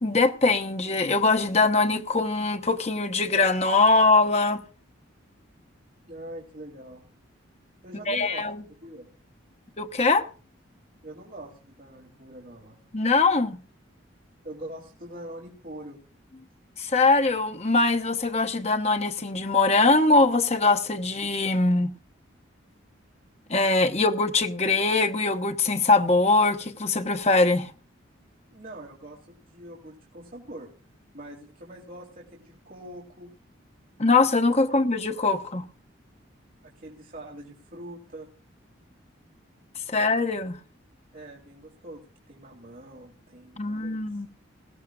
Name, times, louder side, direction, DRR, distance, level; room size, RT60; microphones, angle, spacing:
voice 1, 0.0-4.6 8.1-8.6 9.8-10.3 12.9-13.6 16.8-21.9 23.5-27.7 34.0-35.6 39.9-40.6 43.6-44.3, left 3 dB, 35° left, 1.1 m, -22 dB
voice 2, 6.1-7.0 7.8-9.1 11.0-12.8 14.4-16.0 28.5-30.7 31.1-33.3 36.7-38.3 41.1-44.0, right 1 dB, 45° right, 3.0 m, -43 dB
20.0 x 16.0 x 2.4 m
head